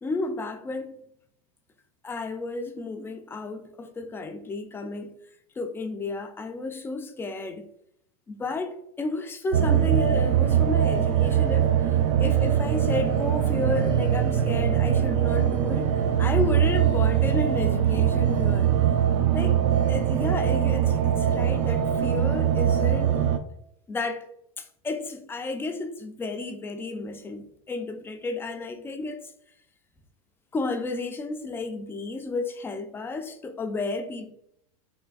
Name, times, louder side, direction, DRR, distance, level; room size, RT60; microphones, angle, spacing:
voice 1, 0.0-1.0 2.0-5.2 5.6-7.7 8.3-18.7 19.3-19.6 19.9-23.2 23.9-24.3 24.6-29.2 30.5-34.3, left 3 dB, 10° left, 0.3 m, -32 dB
sound 1, 9.5-23.4, right 9 dB, 70° right, 0.4 m, -22 dB
3.4 x 3.1 x 2.3 m
hypercardioid pair, 115°, 19 cm